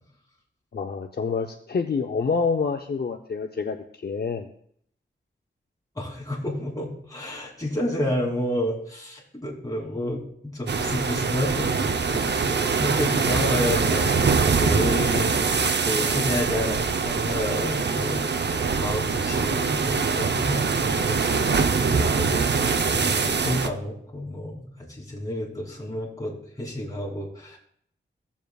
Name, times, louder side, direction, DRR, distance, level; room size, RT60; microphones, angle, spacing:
voice 1, 0.7-4.5, left 5 dB, 55° left, 4 dB, 0.6 m, -27 dB
voice 2, 5.9-18.2 18.8-22.5 22.9-27.6, left 1 dB, 20° left, -4 dB, 2.9 m, -30 dB
sound 1, 10.7-23.7, right 5 dB, 60° right, 0.6 m, -23 dB
16.0 x 7.3 x 2.3 m, 0.66 s
wide cardioid pair, 90°, 19 cm